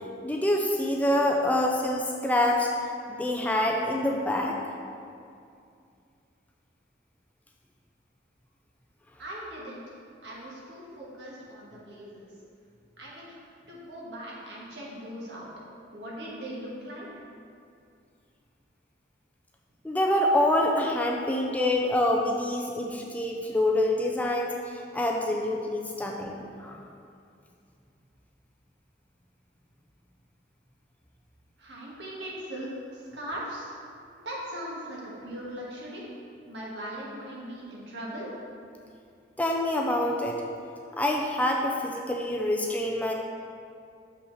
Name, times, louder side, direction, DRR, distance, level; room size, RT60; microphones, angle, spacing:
voice 1, 0.2-2.7 3.1-4.6 19.8-26.8 39.4-40.4 40.9-43.1, left 1 dB, 10° left, 0 dB, 0.4 m, -26 dB
voice 2, 9.2-12.3 13.0-13.4 13.7-15.5 15.9-17.2 31.6-33.7 34.2-36.0 36.5-38.3, right 1 dB, 75° right, -5 dB, 1.6 m, -39 dB
6.5 x 5.7 x 4.0 m, 2.4 s
head